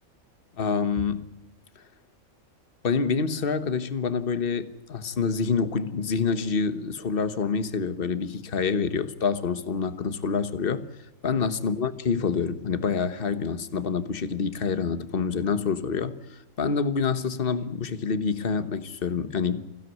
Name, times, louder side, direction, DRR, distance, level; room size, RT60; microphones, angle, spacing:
voice 1, 0.6-1.3 2.8-10.8 11.2-19.6, left 5 dB, 40° left, 1.3 m, -27 dB
23.0 x 16.0 x 9.3 m
omnidirectional pair, 1.5 m